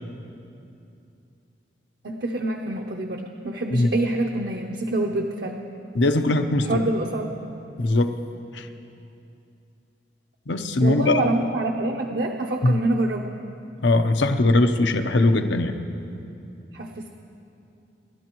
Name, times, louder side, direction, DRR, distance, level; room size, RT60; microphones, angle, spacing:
voice 1, 2.0-5.7 6.6-7.3 10.8-13.4 16.7-17.2, right 2 dB, 60° right, 2 dB, 0.7 m, -26 dB
voice 2, 5.9-6.7 7.8-8.1 8.5-8.7 10.5-11.2 12.6-12.8 13.8-15.8, left 2 dB, 85° left, 7 dB, 0.8 m, -20 dB
29.0 x 12.5 x 3.1 m, 2.7 s
head